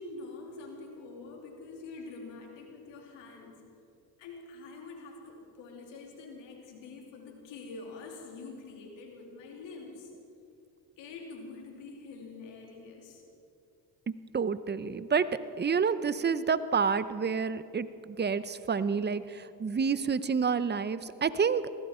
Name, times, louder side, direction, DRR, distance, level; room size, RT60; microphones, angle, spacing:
voice 1, 0.0-3.6 4.2-10.1 11.0-13.2, left 3 dB, 90° left, 1 dB, 2.9 m, -45 dB
voice 2, 14.1-15.3 15.6-21.6, right 6 dB, 25° right, 14 dB, 0.7 m, -29 dB
21.0 x 15.5 x 4.4 m, 2.7 s
supercardioid pair, 70°, 43 cm